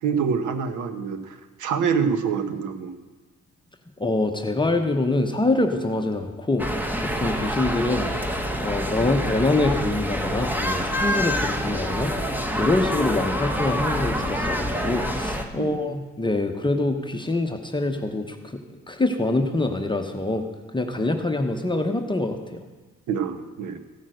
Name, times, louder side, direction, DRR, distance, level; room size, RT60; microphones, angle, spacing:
voice 1, 0.0-2.9 15.5-15.9 23.1-23.8, right 6 dB, 80° right, 9 dB, 1.1 m, -26 dB
voice 2, 4.0-6.7 7.0-8.1 8.6-12.2 12.5-18.6 18.9-20.4 20.7-22.4, left 2 dB, 15° left, 4 dB, 1.0 m, -25 dB
sound 1, 6.6-15.5, equal, 5° right, 1.2 m, -27 dB
15.0 x 6.3 x 7.7 m, 1.3 s
cardioid pair, 90°, 30 cm